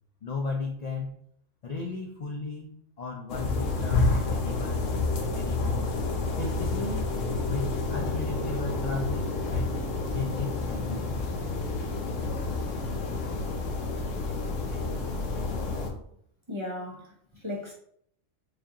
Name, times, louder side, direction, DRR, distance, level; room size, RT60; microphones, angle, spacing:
voice 1, 0.2-1.2 1.6-4.9 5.3-6.0 6.4-7.1 7.5-9.8 10.1-11.3, left 3 dB, 65° left, 1 dB, 0.4 m, -35 dB
sound 1, 3.3-15.9, left 3 dB, 85° left, 1.1 m, -29 dB
voice 2, 16.5-17.7, left 2 dB, 30° right, -2 dB, 0.6 m, -36 dB
4.9 x 2.4 x 2.8 m, 0.67 s
omnidirectional pair, 1.3 m